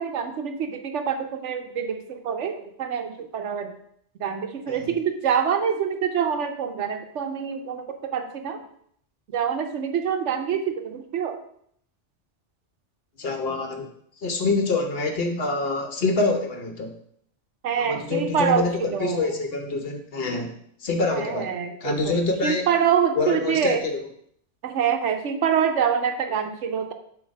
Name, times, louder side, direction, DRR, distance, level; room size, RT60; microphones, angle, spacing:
voice 1, 0.0-3.7 4.1-7.8 8.1-8.6 9.3-11.4 17.6-19.3 21.1-23.8 24.6-26.9, right 7 dB, 85° right, 6 dB, 1.1 m, -26 dB
voice 2, 13.2-13.9 14.2-16.9 17.8-20.5 20.8-21.5 21.8-22.7 23.2-24.0, left 3 dB, 55° left, 4 dB, 1.1 m, -26 dB
7.5 x 2.9 x 5.2 m, 0.66 s
omnidirectional pair, 1.2 m